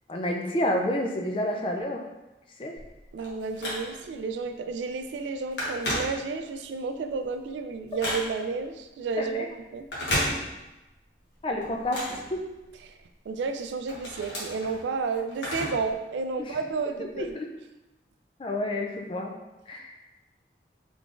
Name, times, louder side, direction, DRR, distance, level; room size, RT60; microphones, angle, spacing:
voice 1, 0.1-2.0 2.6-2.8 9.2-9.4 11.4-12.0 12.3-12.4 16.4-16.6 17.2-17.5 18.4-19.3 19.7-19.9, left 1 dB, 30° left, 2 dB, 0.4 m, -29 dB
Telephone, 2.8-4.2 4.7-4.9 5.1-6.6 7.1-8.6 9.8-10.9 11.2-13.0 13.4-15.9 16.2-16.3 17.2-17.3, left 1 dB, 80° left, 1.2 m, -33 dB
voice 2, 3.1-9.9 12.8-12.9 13.3-17.3, right 4 dB, 85° right, 7 dB, 0.3 m, -31 dB
3.7 x 3.4 x 2.5 m, 1.0 s
head